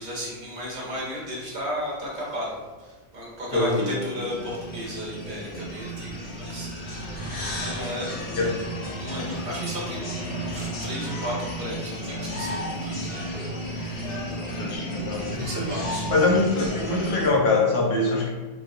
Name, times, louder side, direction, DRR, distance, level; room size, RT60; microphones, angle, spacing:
voice 1, 0.0-8.6 8.9-14.5 15.0-15.1 15.3-16.1, equal, 55° right, -4 dB, 1.0 m, -35 dB
voice 2, 3.5-4.0 8.4-8.5 14.6-15.7 16.1-18.3, left 3 dB, 75° left, -1 dB, 0.9 m, -23 dB
sound 1, 4.2-17.3, right 1 dB, 50° left, 0.7 m, -33 dB
4.1 x 2.1 x 2.5 m, 1.3 s
omnidirectional pair, 1.1 m